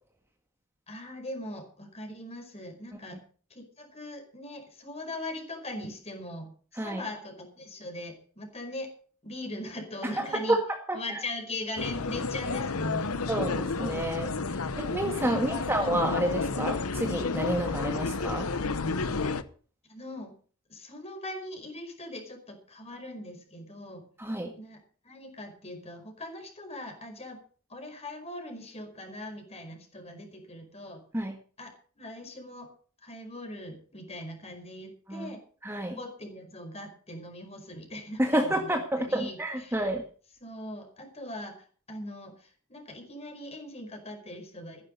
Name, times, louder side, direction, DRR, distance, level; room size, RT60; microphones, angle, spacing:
voice 1, 0.9-3.2 3.5-8.9 9.2-10.6 10.9-13.3 15.3-15.7 19.9-20.4 20.7-24.1 24.6-27.4 27.7-31.0 31.6-32.7 33.0-35.4 35.8-39.9 40.4-44.8, left 1 dB, 30° left, 5 dB, 5.0 m, -40 dB
voice 2, 10.2-10.6 10.9-11.2 13.3-18.5 24.2-24.5 31.1-31.3 35.1-35.3 35.6-36.0 38.2-40.0, right 1 dB, 10° right, 3 dB, 1.7 m, -29 dB
sound 1, 11.8-19.4, left 4 dB, 85° left, 1.0 m, -31 dB
15.0 x 11.5 x 5.4 m, 0.42 s
head